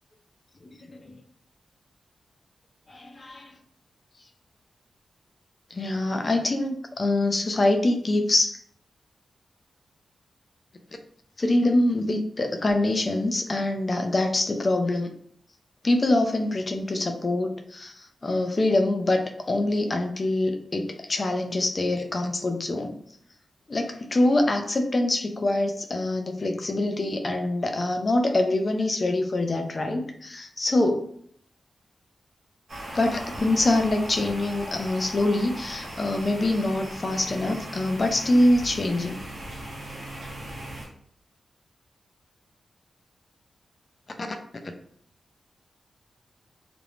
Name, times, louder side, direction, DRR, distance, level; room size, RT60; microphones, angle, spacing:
voice 1, 0.9-1.2 2.9-3.6 5.7-8.6 11.4-15.1 15.8-22.9 23.7-31.1 32.9-39.2, left 2 dB, 40° left, 5 dB, 0.4 m, -24 dB
sound 1, 32.7-40.9, right 1 dB, 80° right, 1.0 m, -38 dB
2.5 x 2.0 x 3.0 m, 0.63 s
cardioid pair, 80°, 0 cm